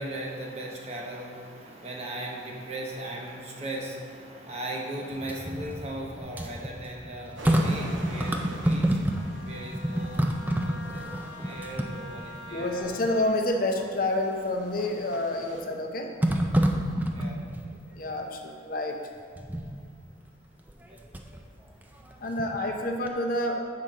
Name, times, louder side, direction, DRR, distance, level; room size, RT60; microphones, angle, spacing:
voice 1, 0.0-11.2 11.4-12.9 17.1-17.4 20.8-21.0, right 1 dB, 35° right, -1 dB, 0.9 m, -38 dB
sound 1, 5.1-9.4 9.7-12.5 13.0-13.1 14.8-15.3 16.2-17.7 19.4-19.8 20.7-21.4 21.8-22.8 23.1-23.2, right 1 dB, 10° right, 0.3 m, -28 dB
sound 2, 7.4-15.6, right 1 dB, 80° right, 1.0 m, -46 dB
Wind instrument woodwind instrument, 9.1-13.4, left 2 dB, 85° left, 0.6 m, -45 dB
voice 2, 12.5-16.1 17.9-19.0 22.2-23.6, left 1 dB, 45° left, 2 dB, 0.7 m, -28 dB
8.0 x 5.6 x 3.7 m, 2.2 s
head